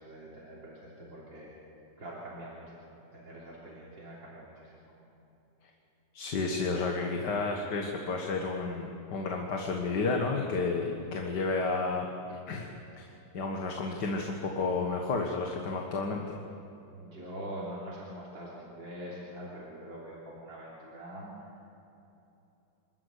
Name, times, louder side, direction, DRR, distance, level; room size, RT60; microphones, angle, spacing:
voice 1, 0.0-1.6 2.0-4.9 16.9-21.3, right 1 dB, 80° right, -6 dB, 4.0 m, -44 dB
voice 2, 6.1-12.7 13.0-16.2, left 3 dB, 65° left, 1 dB, 2.1 m, -31 dB
27.0 x 13.5 x 8.2 m, 3.0 s
omnidirectional pair, 2.0 m